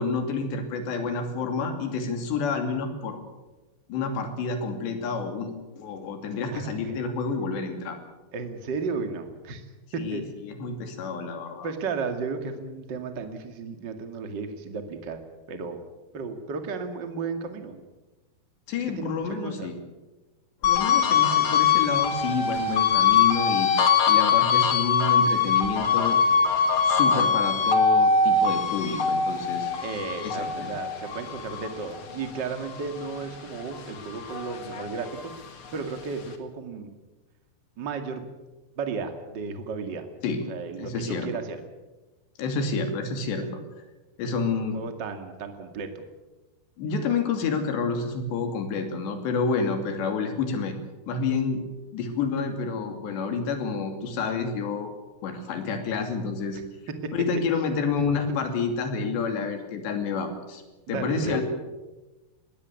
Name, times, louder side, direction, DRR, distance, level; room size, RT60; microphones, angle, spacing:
voice 1, 0.0-3.2 3.9-5.5 5.8-8.0 10.0-11.7 18.7-19.7 20.6-23.7 24.1-26.2 26.8-29.7 30.2-30.7 40.2-40.4 40.8-41.3 42.4-43.6 44.2-44.8 46.8-50.7 51.1-51.6 51.9-54.9 55.2-56.6 57.1-60.6 60.9-61.4, left 4 dB, 70° left, 5 dB, 4.8 m, -29 dB
voice 2, 6.5-6.9 8.3-9.6 9.9-10.2 11.6-15.2 15.5-15.8 16.1-17.8 18.9-19.7 29.8-35.3 35.7-36.9 37.8-38.3 38.8-40.0 40.5-41.6 44.4-46.0 56.9-57.1 58.0-58.4 59.1-59.2 60.9-61.4, right 4 dB, 40° right, 6 dB, 1.6 m, -34 dB
sound 1, 20.6-33.3 33.7-35.3, left 6 dB, 50° left, 1.7 m, -23 dB
21.0 x 17.5 x 8.4 m, 1.1 s
omnidirectional pair, 5.3 m